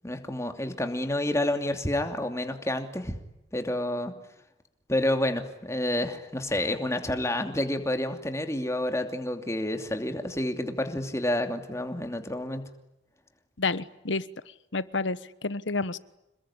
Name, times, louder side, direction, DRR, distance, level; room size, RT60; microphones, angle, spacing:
voice 1, 0.0-3.2 3.5-4.1 4.9-12.6, left 1 dB, 15° left, 6 dB, 2.8 m, -29 dB
voice 2, 13.6-14.2 14.7-16.0, left 3 dB, 85° left, 16 dB, 1.3 m, -29 dB
28.0 x 21.5 x 10.0 m, 0.88 s
head